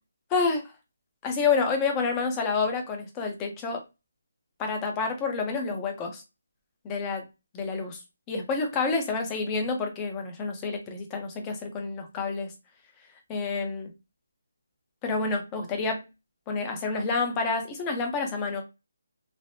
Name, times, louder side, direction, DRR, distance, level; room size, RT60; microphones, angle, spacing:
voice 1, 0.3-0.6 1.2-3.8 4.6-6.2 6.8-7.2 7.5-8.0 8.3-12.5 13.3-13.9 15.0-16.0 16.5-18.6, left 4 dB, 15° left, 4 dB, 0.6 m, -28 dB
3.3 x 2.0 x 2.6 m, 0.24 s
hypercardioid pair, 175°, 0 cm